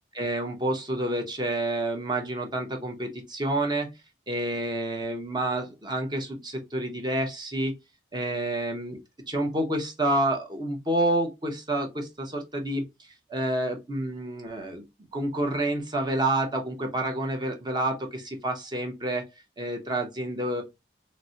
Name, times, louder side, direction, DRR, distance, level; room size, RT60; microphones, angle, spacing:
voice 1, 0.1-3.9 4.3-7.7 8.1-9.0 9.3-12.8 13.3-14.8 15.1-19.2 19.6-20.6, right 1 dB, 25° right, 0.7 m, -28 dB
4.1 x 2.1 x 2.6 m
head